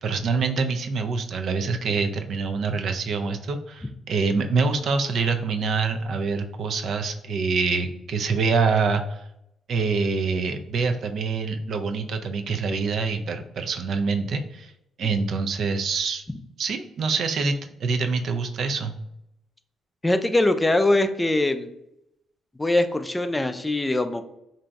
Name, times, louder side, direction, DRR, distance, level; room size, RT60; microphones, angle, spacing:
voice 1, 0.0-9.2 9.7-14.7 15.0-16.2 16.6-19.0, right 4 dB, 65° right, 6 dB, 0.3 m, -25 dB
voice 2, 20.0-21.7 22.6-24.2, left 2 dB, 15° left, 9 dB, 0.3 m, -22 dB
2.6 x 2.2 x 3.9 m, 0.81 s
cardioid pair, 90°, 0 cm